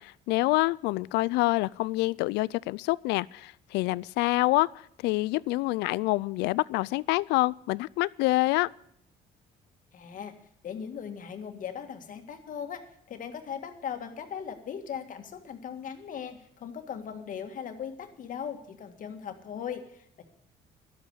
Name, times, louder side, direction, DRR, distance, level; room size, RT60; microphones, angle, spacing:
voice 1, 0.0-4.7 5.0-8.7, left 20 dB, 90° left, 0.4 m, -26 dB
voice 2, 9.9-10.3 10.6-12.8 13.1-20.2, left 8 dB, 50° left, 1.9 m, -38 dB
12.5 x 8.5 x 8.1 m
cardioid pair, 110°, 17 cm